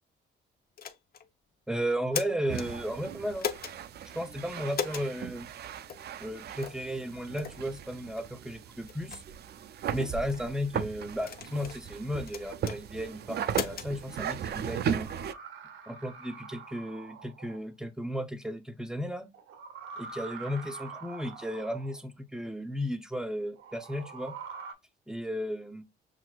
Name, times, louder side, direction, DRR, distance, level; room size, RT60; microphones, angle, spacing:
sound 1, 0.8-1.3 1.9-2.7 3.4-3.8 4.7-5.1 5.9-6.0 6.6-6.8 7.4-7.6 8.2-8.3 8.9-9.2 10.0-10.4 11.2-11.8 12.3-12.8 13.5-13.9, left 7 dB, 50° left, 0.7 m, -36 dB
voice 1, 1.7-3.5 4.1-5.5 6.2-9.2 9.9-15.1 15.9-19.3 20.0-24.3 25.1-25.8, equal, 5° right, 0.7 m, -34 dB
sound 2, 2.5-15.3, right 8 dB, 55° right, 0.4 m, -37 dB
sound 3, 15.0-17.6 19.3-22.0 23.6-24.7, right 5 dB, 85° right, 0.9 m, -45 dB
6.0 x 2.6 x 2.4 m
cardioid pair, 90°, 20 cm